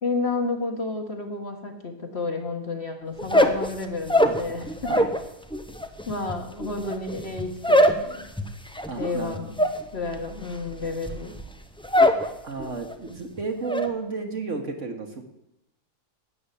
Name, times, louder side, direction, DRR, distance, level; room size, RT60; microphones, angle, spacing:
voice 1, 0.0-4.9 6.1-8.3 9.0-9.5 9.9-11.3 13.5-13.6, left 3 dB, 40° left, 3 dB, 2.0 m, -31 dB
sound 1, 3.2-5.2 5.5-12.3 12.6-13.1 13.4-13.9, equal, 5° left, 0.7 m, -23 dB
voice 2, 4.2-5.1 8.9-9.4 12.4-15.2, right 4 dB, 50° right, 4 dB, 1.8 m, -33 dB
12.0 x 8.7 x 8.4 m, 0.86 s
omnidirectional pair, 1.7 m